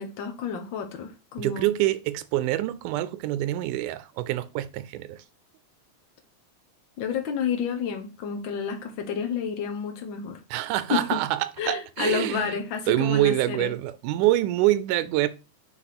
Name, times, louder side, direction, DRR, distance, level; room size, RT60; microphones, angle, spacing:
voice 1, 0.0-1.7 7.0-10.4 10.9-11.2 11.6-13.7, left 7 dB, 70° left, 1.1 m, -30 dB
voice 2, 1.4-5.2 10.5-12.6 12.9-15.3, right 15 dB, 90° right, 2.1 m, -25 dB
5.1 x 4.3 x 5.9 m
omnidirectional pair, 3.5 m